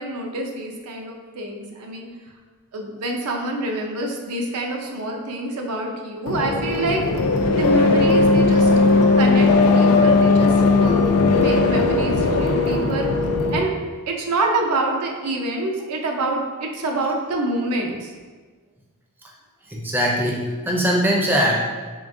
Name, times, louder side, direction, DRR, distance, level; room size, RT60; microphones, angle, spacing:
voice 1, 0.0-2.1 2.7-7.1 7.5-8.7 9.2-13.1 13.5-13.7 14.1-18.1, right 2 dB, 85° right, 1 dB, 0.5 m, -26 dB
sound 1, 6.3-13.6, left 3 dB, 70° left, 0.3 m, -17 dB
voice 2, 19.7-21.6, equal, 10° right, -2 dB, 0.4 m, -21 dB
3.7 x 3.4 x 2.5 m, 1.4 s
head